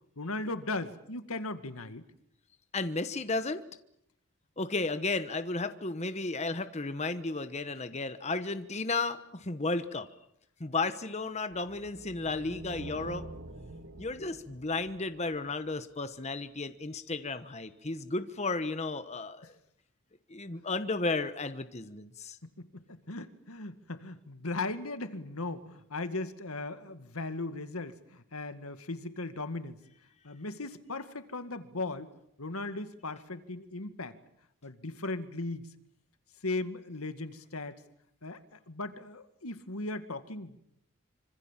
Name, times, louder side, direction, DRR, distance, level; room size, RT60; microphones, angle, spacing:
voice 1, 0.2-2.0 22.4-29.8 30.2-32.1 32.4-34.2 34.6-35.7 36.4-37.8 38.2-40.7, left 2 dB, 85° left, 10 dB, 2.1 m, -37 dB
voice 2, 2.7-3.6 4.6-10.1 10.6-13.3 14.0-19.6 20.3-22.4, left 3 dB, 30° left, 10 dB, 1.2 m, -33 dB
sound 1, 11.5-15.9, right 2 dB, 70° right, 2.4 m, -46 dB
26.0 x 25.5 x 7.5 m, 0.76 s
head